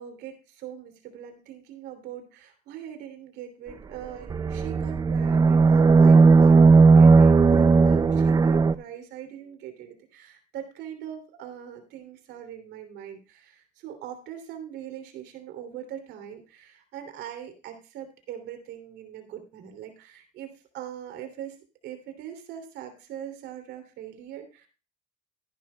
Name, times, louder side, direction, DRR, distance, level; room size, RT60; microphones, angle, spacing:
voice 1, 0.0-21.6 21.8-24.7, right 10 dB, 85° right, 6 dB, 2.8 m, -41 dB
sound 1, 4.3-8.7, right 4 dB, 25° right, 0.4 m, -16 dB
15.0 x 11.0 x 2.2 m, 0.33 s
cardioid pair, 110°, 17 cm